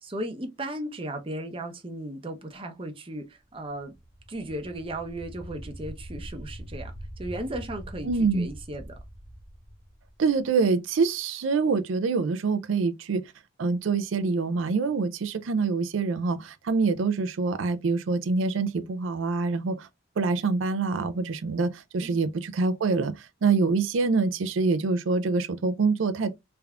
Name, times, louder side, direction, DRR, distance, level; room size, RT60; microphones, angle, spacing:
voice 1, 0.0-3.9 4.3-6.9 7.2-8.9 22.0-22.2, right 1 dB, 30° right, 0.7 m, -36 dB
sound 1, 3.9-10.5, equal, 10° left, 0.9 m, -42 dB
voice 2, 8.0-8.5 10.2-13.3 13.6-19.9 20.2-26.3, right 4 dB, 85° right, 0.4 m, -25 dB
3.4 x 3.4 x 2.3 m
head